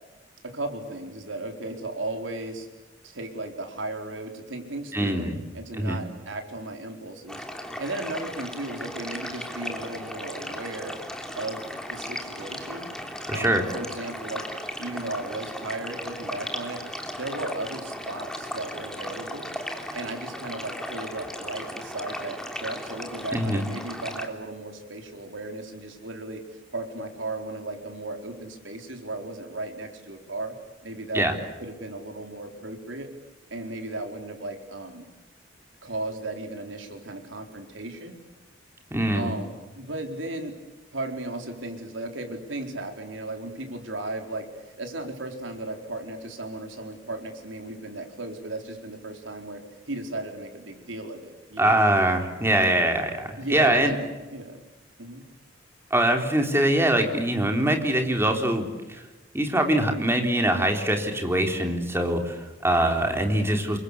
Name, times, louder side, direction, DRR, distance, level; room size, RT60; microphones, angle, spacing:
voice 1, 0.4-2.7 3.0-7.4 7.8-11.0 11.4-13.0 13.3-14.5 14.8-16.8 17.2-19.5 19.9-26.4 26.7-30.6 30.8-31.3 31.6-33.1 33.5-35.0 35.8-38.2 39.1-40.6 40.9-49.6 49.9-51.9 53.4-54.0 54.3-54.6 55.0-55.3, right 2 dB, 80° right, 4 dB, 4.4 m, -35 dB
voice 2, 4.9-5.4 5.8-6.0 13.3-13.6 23.3-23.6 31.1-31.3 38.9-39.3 51.6-53.9 55.9-59.0 59.3-63.8, right 1 dB, 15° right, 4 dB, 3.7 m, -23 dB
sound 1, 7.3-24.3, equal, 5° left, 3.2 m, -36 dB
28.5 x 23.5 x 8.3 m, 1.1 s
head